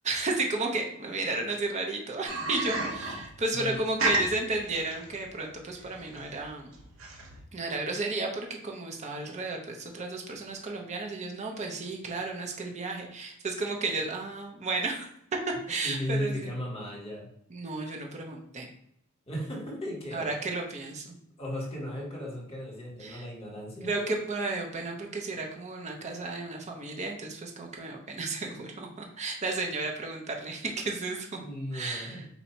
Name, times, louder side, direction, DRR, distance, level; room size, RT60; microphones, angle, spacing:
voice 1, 0.0-6.7 7.5-15.1 15.7-16.5 17.5-18.7 20.1-21.2 23.0-23.2 23.8-31.3 31.7-32.2, right 3 dB, 35° right, 1 dB, 0.7 m, -33 dB
sound 1, 2.3-7.4, right 2 dB, 65° right, 0.9 m, -32 dB
voice 2, 3.5-3.8 6.1-6.2 15.8-17.3 19.3-20.3 21.4-24.1 31.4-32.3, left 1 dB, 25° left, -2 dB, 1.5 m, -36 dB
4.1 x 2.7 x 4.4 m, 0.74 s
head